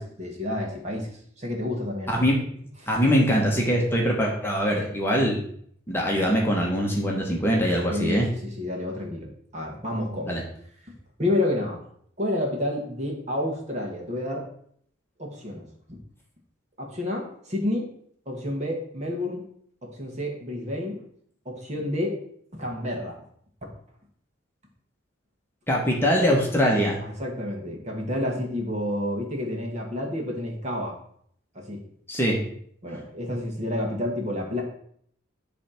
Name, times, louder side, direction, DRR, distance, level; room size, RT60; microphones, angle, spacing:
voice 1, 0.0-2.2 2.8-3.0 7.9-10.4 11.2-11.8 12.2-14.5 15.2-15.7 16.8-17.9 18.3-19.4 19.8-21.0 21.5-22.2 22.5-23.2 23.6-23.7 27.0-31.0 31.6-31.8 32.8-34.6, left 1 dB, 35° right, 0 dB, 1.7 m, -30 dB
voice 2, 2.9-5.4 5.9-8.3 10.2-10.4 25.7-27.0 32.1-32.4, equal, 10° left, -2 dB, 1.2 m, -22 dB
9.7 x 3.4 x 5.7 m, 0.65 s
head